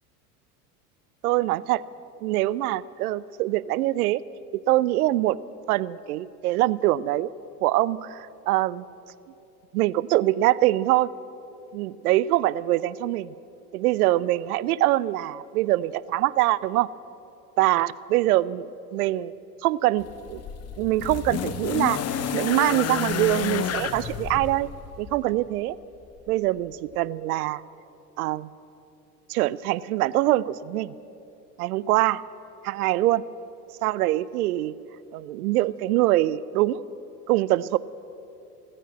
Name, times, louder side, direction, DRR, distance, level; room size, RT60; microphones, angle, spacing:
voice 1, 1.2-1.8 2.2-4.2 4.5-5.4 5.7-7.3 7.6-8.8 9.7-11.1 11.7-13.3 13.7-16.9 17.6-19.3 19.6-20.4 20.8-24.7 25.0-25.8 26.3-27.6 28.2-28.5 29.3-30.9 31.6-32.2 32.6-33.2 33.8-34.7 35.1-36.8 37.3-37.8, right 16 dB, 70° right, 20 dB, 0.6 m, -24 dB
sound 1, 20.0-25.2 26.3-26.4, left 8 dB, 30° left, 0.9 m, -30 dB
15.0 x 9.9 x 8.5 m, 2.9 s
hypercardioid pair, 80°, 47 cm